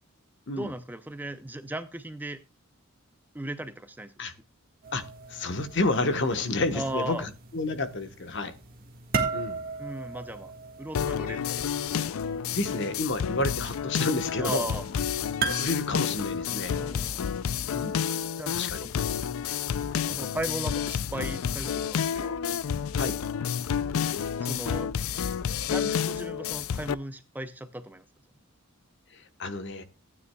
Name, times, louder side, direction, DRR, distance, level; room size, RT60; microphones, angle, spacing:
voice 1, 0.5-2.4 3.3-4.1 6.7-7.3 9.8-10.5 10.8-11.7 14.4-14.9 16.7-17.2 18.4-18.5 18.8-19.1 20.1-22.4 24.4-24.9 25.7-28.0, right 1 dB, 10° right, 0.5 m, -37 dB
sound 1, 4.8-18.0, right 4 dB, 45° right, 1.6 m, -38 dB
voice 2, 5.3-8.5 9.3-9.6 12.5-14.7 15.6-16.8 17.7-18.0 18.5-18.9 23.0-23.2 29.4-29.8, left 2 dB, 55° left, 1.1 m, -30 dB
sound 2, 10.9-26.9, left 8 dB, 75° left, 0.4 m, -30 dB
15.0 x 9.5 x 2.3 m
head